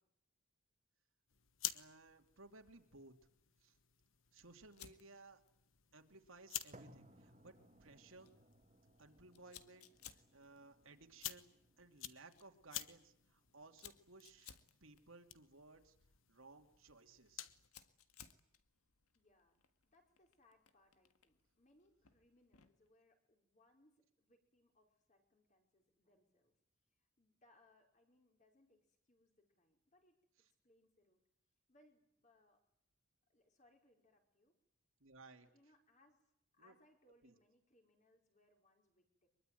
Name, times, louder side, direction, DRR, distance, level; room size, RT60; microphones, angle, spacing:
sound 1, 1.3-17.7, left 13 dB, 65° left, 1.3 m, -52 dB
voice 1, 1.7-3.1 3.6-3.8 4.3-5.4 5.9-7.5 7.8-8.3 9.0-9.9 10.1-14.6 14.8-15.9 16.3-17.5 35.0-35.5 36.6-36.7 37.2-37.4, right 3 dB, 65° right, 5 dB, 2.8 m, -60 dB
Fire, 4.7-22.9, left 9 dB, 90° left, 1.7 m, -65 dB
sound 2, 6.7-14.8, right 1 dB, 30° right, 2.0 m, -66 dB
voice 2, 19.1-19.6 19.9-26.6 26.9-31.2 31.7-32.6 33.3-34.6 35.4-39.3, left 1 dB, 35° left, 3 dB, 4.9 m, -73 dB
24.0 x 22.5 x 9.3 m, 0.75 s
head